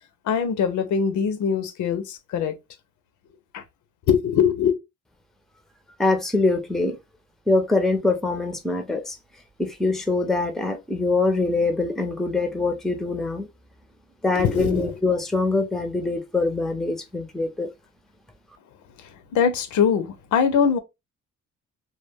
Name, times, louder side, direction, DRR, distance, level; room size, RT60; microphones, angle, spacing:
voice 1, 0.2-2.6 3.5-3.6 4.1-4.8 14.3-15.0 19.0-20.8, left 7 dB, 75° left, 0.6 m, -22 dB
voice 2, 6.0-7.0 7.5-9.2 9.6-13.5 14.2-17.7, left 3 dB, ahead, 0.5 m, -23 dB
2.2 x 2.1 x 3.3 m
cardioid pair, 90°, 30 cm